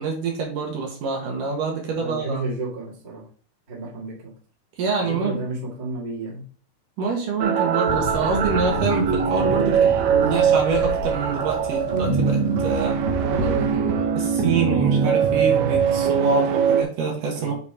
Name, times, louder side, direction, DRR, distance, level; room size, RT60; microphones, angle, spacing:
voice 1, 0.0-2.4 4.8-5.4 7.0-9.9 10.2-13.0 14.2-17.5, right 4 dB, 65° right, 1 dB, 2.6 m, -26 dB
voice 2, 1.9-3.2 3.7-4.3 5.0-6.4 13.2-15.1 17.3-17.5, right 3 dB, 20° right, -4 dB, 1.4 m, -31 dB
sound 1, 7.4-16.8, right 7 dB, 85° right, 1.6 m, -21 dB
Thunder, 7.9-13.8, left 3 dB, 80° left, 3.0 m, -33 dB
8.2 x 4.0 x 4.9 m, 0.42 s
omnidirectional pair, 4.6 m